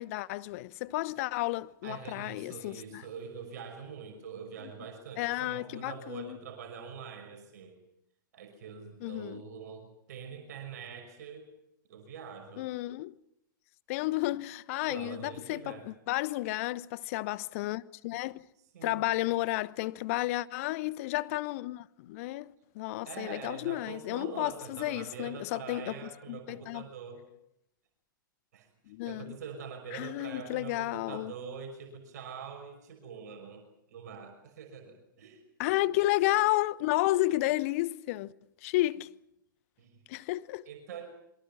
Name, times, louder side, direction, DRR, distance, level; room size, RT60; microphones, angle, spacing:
voice 1, 0.0-3.0 5.2-6.4 9.0-9.4 12.6-13.1 13.9-18.4 18.8-26.0 26.3-26.9 28.9-29.4 29.9-31.3 35.6-38.3 38.6-39.1 40.1-40.6, left 18 dB, 40° left, 1.1 m, -32 dB
voice 2, 1.8-7.8 8.3-11.5 11.9-12.7 14.8-15.9 18.7-19.2 23.1-27.2 28.5-28.7 29.1-33.6 33.9-35.4 39.8-40.0 40.7-41.1, right 6 dB, 50° right, 5.8 m, -44 dB
27.5 x 24.0 x 6.1 m
figure-of-eight pair, 105°, 11 cm